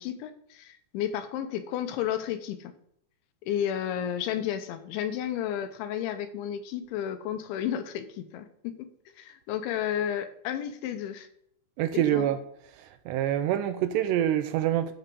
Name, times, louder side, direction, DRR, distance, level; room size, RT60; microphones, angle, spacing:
voice 1, 0.0-2.7 3.5-11.3 11.9-12.3, left 10 dB, 85° left, 3.3 m, -32 dB
voice 2, 11.8-12.4 13.1-14.9, right 11 dB, 85° right, 2.6 m, -25 dB
13.5 x 5.7 x 5.3 m
omnidirectional pair, 5.3 m